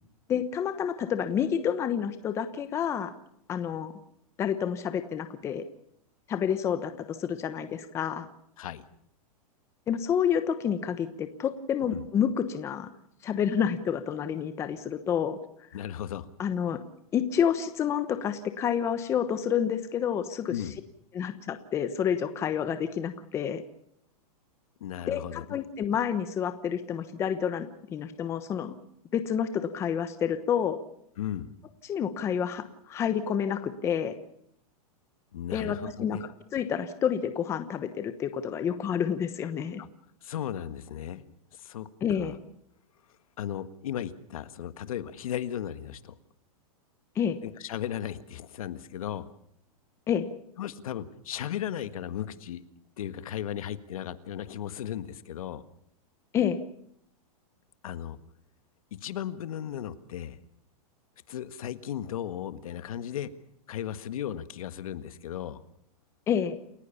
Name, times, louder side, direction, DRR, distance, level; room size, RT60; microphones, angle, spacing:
voice 1, 0.3-3.1 3.5-3.9 4.4-5.6 6.3-8.3 9.9-12.9 13.2-15.4 16.4-16.8 17.1-20.5 21.1-23.6 25.1-28.7 29.1-30.8 31.8-34.1 35.5-39.8 42.0-42.3 47.2-47.4 50.1-50.3 56.3-56.6 66.3-66.5, left 8 dB, 15° left, 10 dB, 1.0 m, -29 dB
voice 2, 15.7-16.3 20.5-20.7 24.8-25.4 31.2-31.5 35.3-36.2 39.8-39.9 40.2-41.2 41.6-41.9 42.1-42.4 43.4-46.2 47.4-49.3 50.6-52.7 53.0-55.6 57.8-58.2 59.0-60.4 61.3-63.3 63.7-65.6, left 10 dB, 65° left, 12 dB, 1.7 m, -36 dB
28.5 x 15.5 x 7.1 m, 0.71 s
supercardioid pair, 170°, 19 cm